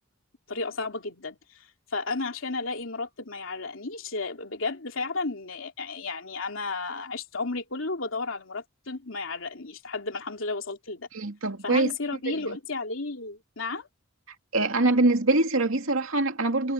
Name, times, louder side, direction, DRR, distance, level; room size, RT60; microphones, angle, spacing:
voice 1, 0.5-11.1 11.6-13.9, left 3 dB, 75° left, 3.0 m, -33 dB
voice 2, 11.1-11.9 12.3-12.4 14.5-16.7, right 2 dB, 85° right, 2.4 m, -24 dB
head